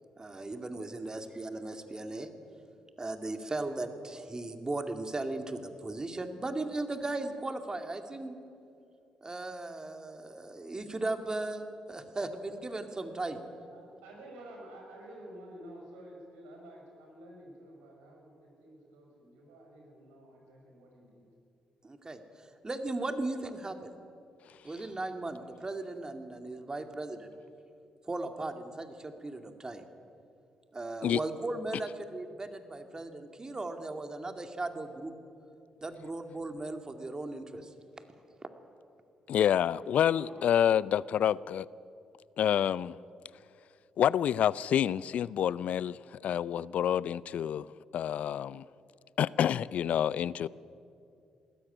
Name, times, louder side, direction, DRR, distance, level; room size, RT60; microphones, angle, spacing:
voice 1, 0.2-2.3 3.0-8.4 9.2-13.4 21.8-22.2 22.6-24.0 24.6-27.4 28.1-29.8 30.7-35.1 35.8-37.7, right 2 dB, 30° right, 7 dB, 2.3 m, -37 dB
voice 2, 1.0-1.3 13.7-21.2 39.2-39.3 40.0-40.7, right 1 dB, 85° right, 0 dB, 5.4 m, -50 dB
voice 3, 39.3-41.7 42.4-42.9 44.0-47.7 47.9-48.6 49.2-50.5, left 10 dB, 65° left, 21 dB, 0.4 m, -28 dB
19.5 x 13.5 x 10.0 m, 2.5 s
hypercardioid pair, 50°, 3 cm